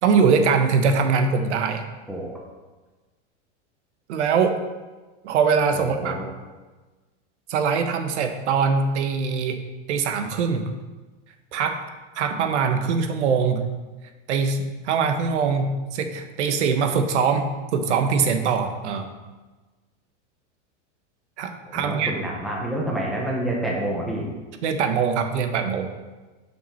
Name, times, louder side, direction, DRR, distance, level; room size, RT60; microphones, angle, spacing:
voice 1, 0.0-1.8 4.1-4.6 5.2-6.2 7.5-9.6 9.9-10.6 11.5-11.8 12.2-13.7 14.3-19.1 21.4-22.1 24.6-25.9, right 5 dB, 75° right, 7 dB, 1.1 m, -22 dB
voice 2, 2.1-2.4 5.7-6.3 21.7-24.3, right 1 dB, ahead, -3 dB, 0.7 m, -28 dB
7.3 x 5.9 x 5.6 m, 1.2 s
supercardioid pair, 175°, 35 cm